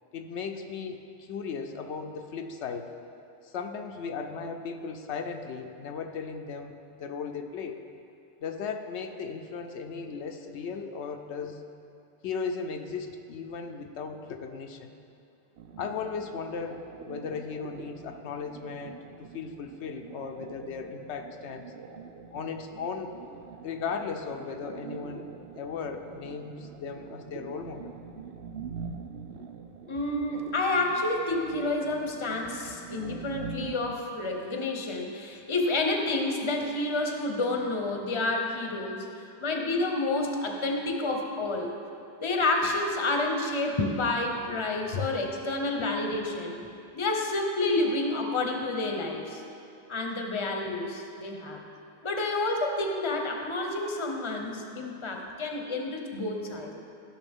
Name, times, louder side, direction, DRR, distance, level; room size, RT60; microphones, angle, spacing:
voice 1, 0.1-2.9 3.4-7.8 8.4-11.6 12.2-14.9 15.8-21.7 22.3-23.1 23.6-27.9 29.4-29.5 44.5-44.6 44.9-45.1 45.8-45.9, left 5 dB, 85° left, 5 dB, 0.9 m, -36 dB
sound 1, 15.6-34.0, right 6 dB, 80° right, 0.9 m, -44 dB
voice 2, 29.9-41.7 42.2-46.7 46.9-49.4 49.9-51.6 52.0-56.7, left 2 dB, 30° left, 2 dB, 0.8 m, -29 dB
14.5 x 6.3 x 3.6 m, 2.6 s
omnidirectional pair, 1.1 m